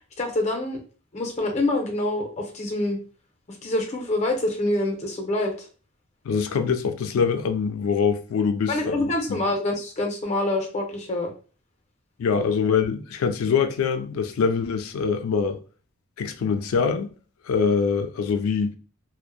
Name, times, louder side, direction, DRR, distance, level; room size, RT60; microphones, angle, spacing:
voice 1, 0.2-0.8 1.1-3.0 3.5-5.7 8.7-11.3, left 2 dB, 35° left, 0.6 m, -26 dB
voice 2, 6.3-9.0 9.3-9.4 12.2-15.6 16.2-17.1 17.5-18.7, left 6 dB, 90° left, 0.3 m, -24 dB
2.6 x 2.1 x 2.3 m
head